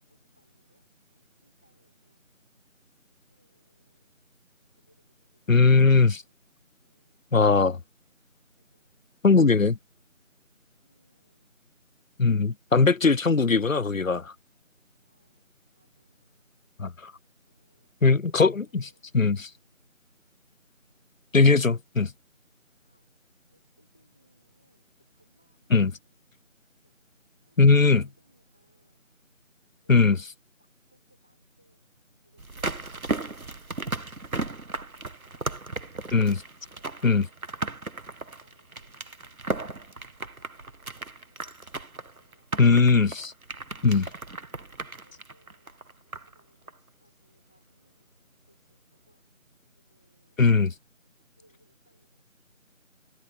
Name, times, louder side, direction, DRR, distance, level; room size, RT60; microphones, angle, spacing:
voice 1, 0.1-2.3 3.3-4.2 4.7-6.4 6.8-7.5 8.6-9.3 10.8-11.5 15.0-16.6 17.5-18.2 18.4-19.3 22.9-23.1 23.5-26.2 26.8-26.9 27.4-29.1 29.8-30.3 30.6-36.0 36.6-37.7 38.0-41.6 41.9-43.2 43.7-45.7 46.0-49.3 49.6-50.6 51.0-52.3, right 1 dB, 5° left, 5.7 m, -69 dB
voice 2, 5.5-6.2 7.3-7.8 9.2-9.8 12.2-14.3 16.8-17.1 18.0-18.8 19.1-19.5 21.3-22.1 25.7-25.9 27.6-28.0 29.9-30.2 36.1-36.4 37.0-37.2 42.6-43.3 43.8-44.0 50.4-50.7, left 4 dB, 70° left, 0.8 m, -20 dB
sound 1, 32.4-46.4 46.7-46.8, right 3 dB, 85° right, 1.5 m, -36 dB
figure-of-eight pair, 180°, 41 cm